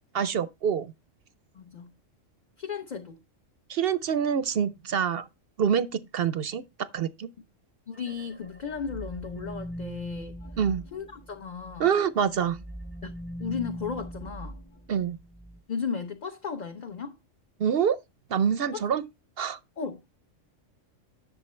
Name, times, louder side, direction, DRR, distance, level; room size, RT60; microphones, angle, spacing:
voice 1, 0.1-0.9 3.7-5.3 5.6-6.6 6.9-7.3 10.6-10.8 11.8-12.6 14.9-15.2 17.6-18.0 18.3-19.0 19.4-19.6, right 8 dB, 60° right, 0.7 m, -26 dB
voice 2, 1.5-1.9 2.6-3.2 7.9-10.4 10.9-11.9 13.0-13.1 13.4-14.6 15.7-17.2 18.7-18.8 19.8-20.2, left 6 dB, 40° left, 0.9 m, -35 dB
sound 1, 7.9-11.8 12.2-15.6, equal, 10° left, 0.6 m, -41 dB
11.0 x 6.7 x 3.2 m
omnidirectional pair, 1.3 m